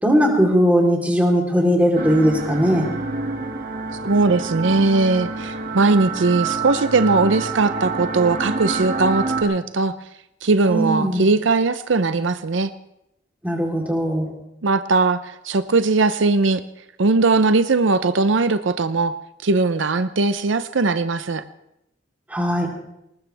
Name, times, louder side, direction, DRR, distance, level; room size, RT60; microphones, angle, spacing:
voice 1, 0.0-2.9 10.6-11.3 13.4-14.3 22.3-22.7, equal, 10° right, 0 dB, 3.5 m, -19 dB
sound 1, 1.9-9.4, right 4 dB, 50° right, 2.2 m, -27 dB
voice 2, 4.0-9.9 10.4-12.7 14.6-16.6 17.0-19.1 19.4-21.4, right 3 dB, 75° right, 11 dB, 0.7 m, -19 dB
20.0 x 19.5 x 3.4 m, 0.83 s
head